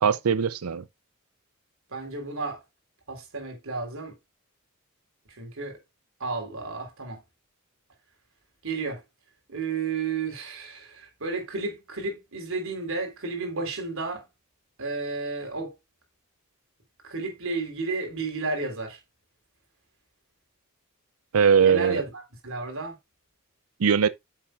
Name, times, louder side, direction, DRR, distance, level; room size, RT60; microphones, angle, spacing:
voice 1, 0.0-0.8 21.3-22.0 23.8-24.1, right 7 dB, 85° right, 0.6 m, -20 dB
voice 2, 1.9-2.6 3.1-4.1 5.4-5.8 6.2-7.2 8.6-9.0 9.5-14.3 14.8-15.7 17.0-19.0 21.6-22.0 22.4-23.0, right 3 dB, 65° right, 3.6 m, -32 dB
9.0 x 7.2 x 2.4 m
head